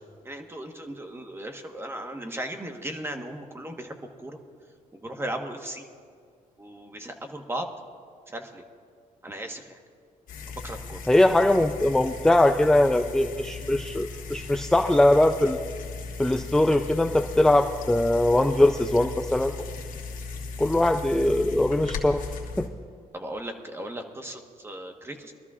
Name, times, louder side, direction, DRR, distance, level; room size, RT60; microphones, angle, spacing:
voice 1, 0.2-4.4 5.0-5.9 6.6-7.7 8.3-8.6 9.2-9.8 10.6-11.0 23.1-25.3, right 1 dB, 15° right, 5 dB, 1.2 m, -36 dB
sound 1, 10.3-22.7, left 4 dB, 70° left, 1.6 m, -37 dB
voice 2, 11.1-15.6 16.2-19.5 20.6-22.2 22.6-22.7, left 1 dB, 5° left, 7 dB, 0.4 m, -21 dB
22.5 x 13.0 x 2.4 m, 2.1 s
cardioid pair, 95°, 14 cm